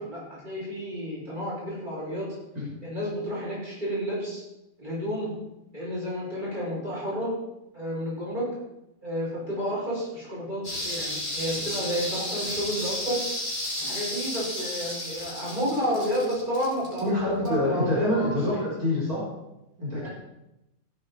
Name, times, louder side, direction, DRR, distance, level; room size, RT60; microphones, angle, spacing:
voice 1, 0.0-2.3 2.8-4.4 4.8-5.3 5.7-7.3 7.7-8.5 9.0-13.2 13.8-18.6 20.0-20.1, equal, 30° right, -6 dB, 6.6 m, -31 dB
sound 1, 10.6-17.7 18.0-18.1, left 1 dB, 30° left, 3.9 m, -33 dB
voice 2, 17.0-19.3 19.8-20.1, left 1 dB, 80° right, -6 dB, 4.5 m, -26 dB
16.0 x 10.5 x 4.2 m, 0.90 s
omnidirectional pair, 1.5 m